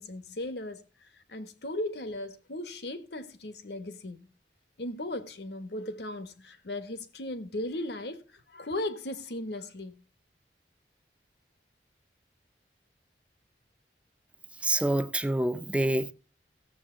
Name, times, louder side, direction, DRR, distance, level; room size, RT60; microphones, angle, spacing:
voice 1, 0.0-4.3 4.8-10.0, left 1 dB, 75° left, 1.3 m, -37 dB
voice 2, 14.6-16.1, right 1 dB, 5° right, 0.5 m, -27 dB
15.5 x 7.4 x 3.8 m
head